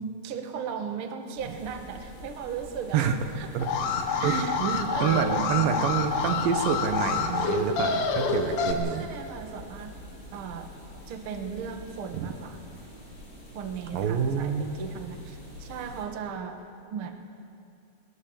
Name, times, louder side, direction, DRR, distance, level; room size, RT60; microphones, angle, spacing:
voice 1, 0.0-3.1 3.4-3.5 4.2-4.6 4.9-5.6 8.8-9.9 10.3-10.7 11.1-12.6 13.5-16.6 16.9-17.1, right 6 dB, 50° right, 5 dB, 1.7 m, -37 dB
sound 1, 1.4-16.0, equal, 15° left, 6.3 m, -46 dB
Alarm, 3.6-8.7, left 5 dB, 80° left, 3.2 m, -27 dB
voice 2, 4.2-9.1 12.1-12.3 13.9-14.8, right 7 dB, 80° right, 7 dB, 2.9 m, -27 dB
20.5 x 20.0 x 7.2 m, 2.4 s
omnidirectional pair, 4.1 m